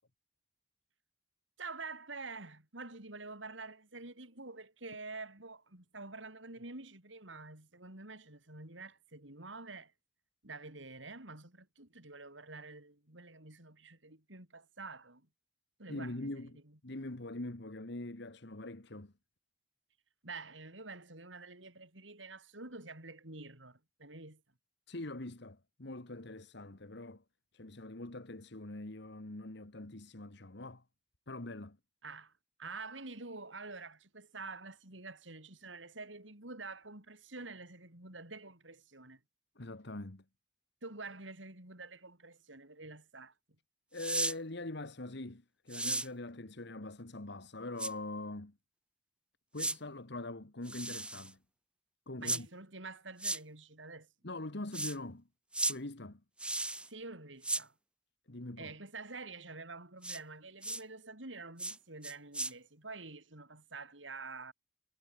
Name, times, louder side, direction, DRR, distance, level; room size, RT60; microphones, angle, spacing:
voice 1, 1.6-9.9 10.4-15.3 15.8-16.3 20.2-24.4 32.0-32.3 32.6-39.2 40.8-43.3 52.2-54.1 56.8-57.7 58.6-64.5, right 3 dB, 85° right, 5.8 m, -48 dB
voice 2, 15.9-19.1 24.9-27.2 27.5-30.8 31.3-31.8 39.6-40.2 43.9-48.6 49.5-51.4 52.1-52.5 54.2-55.3 55.6-56.2 58.3-58.7, left 2 dB, 65° left, 1.8 m, -43 dB
sound 1, 44.0-44.4 45.7-46.1 47.8-47.9 49.6-49.8 50.7-51.3 52.3-52.4 53.2-53.4 54.7-55.0 55.5-55.8 56.4-56.9 57.4-57.6 60.0-60.2 60.6-60.8 61.6-61.8 62.0-62.5, right 2 dB, 5° right, 2.5 m, -35 dB
head